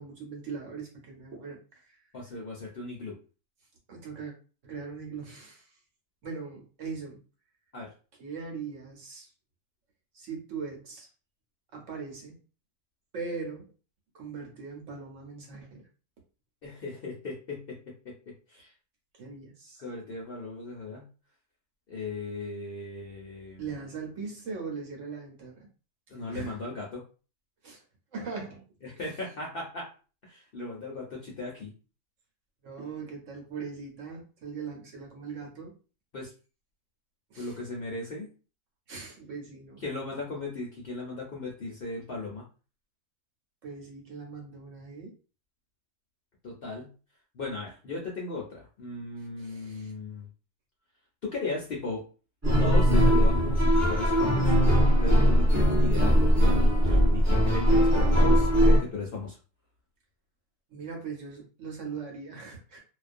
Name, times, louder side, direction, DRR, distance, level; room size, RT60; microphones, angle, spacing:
voice 1, 0.0-2.0 3.9-4.3 4.6-5.7 6.2-7.2 8.2-9.3 10.1-11.1 11.7-12.3 13.1-13.7 14.1-15.8 19.1-19.8 23.6-25.7 26.3-26.7 27.6-27.8 28.1-28.6 29.0-29.1 32.6-35.7 37.3-37.6 38.9-39.8 43.6-45.1 49.4-49.9 60.7-62.8, right 5 dB, 65° right, 0 dB, 1.0 m, -40 dB
voice 2, 2.1-3.2 7.7-7.9 16.6-17.8 18.0-18.1 18.5-18.7 19.8-21.1 21.9-23.6 26.1-27.0 28.8-29.9 30.2-31.7 36.1-36.3 37.4-38.3 39.8-42.4 46.4-46.9 47.3-50.3 51.2-52.1 52.6-54.6 55.0-59.4, left 3 dB, 55° left, -3 dB, 0.6 m, -36 dB
sound 1, 52.4-58.8, equal, 20° right, 0.5 m, -20 dB
2.3 x 2.2 x 2.5 m, 0.35 s
omnidirectional pair, 1.5 m